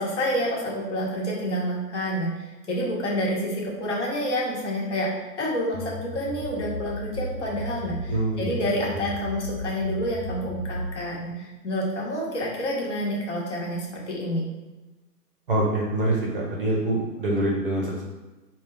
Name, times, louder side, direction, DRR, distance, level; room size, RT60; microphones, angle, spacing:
voice 1, 0.0-14.5, equal, 45° left, -4 dB, 1.2 m, -28 dB
sound 1, 5.7-10.9, equal, 80° left, 0.9 m, -35 dB
voice 2, 8.1-8.5 8.9-9.0 15.5-18.0, right 1 dB, 35° right, -3 dB, 0.7 m, -25 dB
5.0 x 2.3 x 3.4 m, 1.1 s
hypercardioid pair, 155°, 48 cm